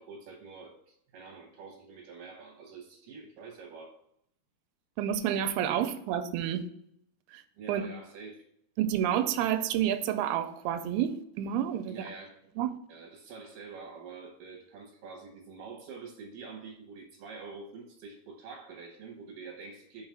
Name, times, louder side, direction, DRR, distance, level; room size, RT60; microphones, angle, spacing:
voice 1, 0.0-4.0 5.8-5.9 7.5-8.4 11.9-12.4 12.9-20.1, right 4 dB, 70° right, 2 dB, 2.3 m, -46 dB
voice 2, 5.0-6.6 7.3-7.4 7.7-7.9 8.8-11.9 12.6-12.7, right 10 dB, 85° right, 10 dB, 2.5 m, -29 dB
5.5 x 4.8 x 5.5 m, 0.73 s
omnidirectional pair, 4.4 m